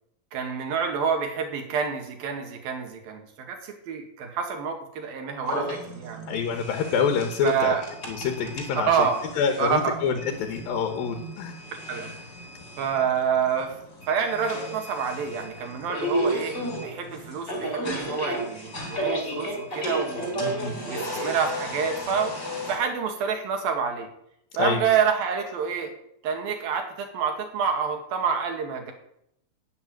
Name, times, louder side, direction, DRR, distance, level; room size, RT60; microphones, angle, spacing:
voice 1, 0.3-6.3 7.4-7.8 8.7-9.2 9.6-10.0 11.9-12.1 12.8-13.7 14.1-16.6 16.8-22.4 22.7-24.1 24.6-25.9 26.2-28.9, right 6 dB, 85° right, 4 dB, 3.9 m, -27 dB
sound 1, 5.4-22.8, equal, 30° left, 4.4 m, -33 dB
voice 2, 6.3-7.8 8.1-8.9 9.4-11.6 20.4-20.7 24.6-24.8, left 6 dB, 80° left, 5 dB, 3.1 m, -26 dB
12.5 x 8.3 x 9.3 m, 0.77 s
omnidirectional pair, 4.1 m